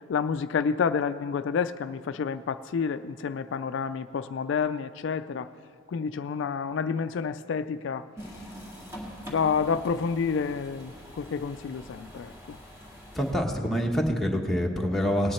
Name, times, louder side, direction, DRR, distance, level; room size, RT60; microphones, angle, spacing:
voice 1, 0.1-5.5 5.9-8.1 9.3-12.6, left 6 dB, 65° left, 11 dB, 0.3 m, -29 dB
sound 1, 8.2-13.3, equal, 15° right, 2.0 m, -44 dB
voice 2, 13.1-15.3, equal, ahead, -1 dB, 1.1 m, -26 dB
18.5 x 9.4 x 4.3 m, 2.2 s
head